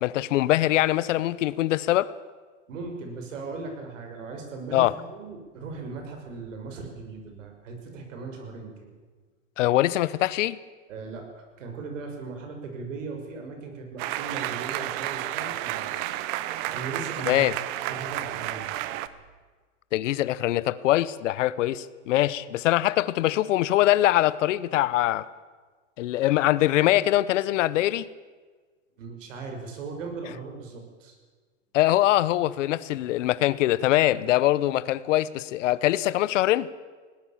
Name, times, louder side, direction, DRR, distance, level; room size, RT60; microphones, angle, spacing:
voice 1, 0.0-2.1 4.7-4.9 9.6-10.6 17.3-17.5 19.9-25.3 26.0-28.1 31.7-36.7, left 15 dB, 75° left, 18 dB, 0.9 m, -23 dB
voice 2, 2.7-8.9 10.9-16.1 16.7-17.5 17.9-18.7 29.0-31.2, right 4 dB, 80° right, 4 dB, 6.1 m, -38 dB
sound 1, 14.0-19.1, right 15 dB, 40° right, 1.0 m, -31 dB
21.0 x 17.5 x 7.4 m, 1.4 s
supercardioid pair, 155°, 37 cm